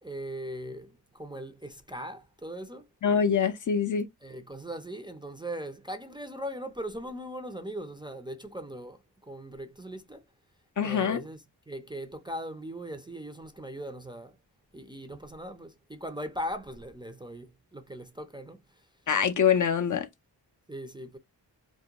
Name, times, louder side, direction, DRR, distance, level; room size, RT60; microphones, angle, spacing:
voice 1, 0.0-2.9 4.2-10.2 10.8-14.3 14.7-18.8 20.7-21.2, equal, 10° right, 0.4 m, -39 dB
voice 2, 3.0-4.1 10.8-11.2 19.1-20.1, left 7 dB, 45° left, 0.4 m, -24 dB
2.4 x 2.1 x 2.8 m
cardioid pair, 55°, 42 cm